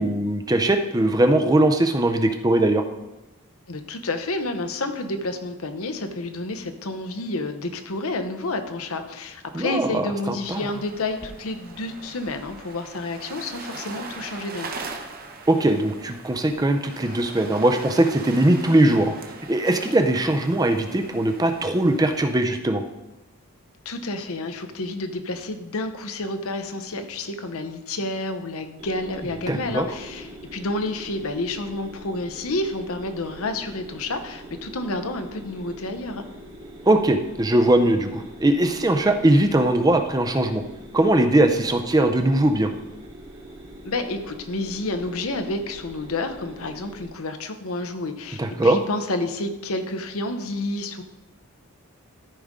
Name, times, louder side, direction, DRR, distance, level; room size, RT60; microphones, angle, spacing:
voice 1, 0.0-2.8 9.5-10.6 15.5-19.1 19.5-22.8 29.5-29.9 36.8-40.6 40.9-42.7 48.4-48.8, right 1 dB, 15° right, 7 dB, 0.5 m, -20 dB
voice 2, 3.7-14.8 23.8-36.2 43.8-51.0, left 2 dB, 75° left, 7 dB, 0.8 m, -30 dB
sound 1, 10.4-22.3, right 3 dB, 40° right, 0.9 m, -40 dB
sound 2, 28.8-47.1, equal, 65° right, 1.9 m, -43 dB
13.0 x 5.2 x 3.7 m, 1.0 s
head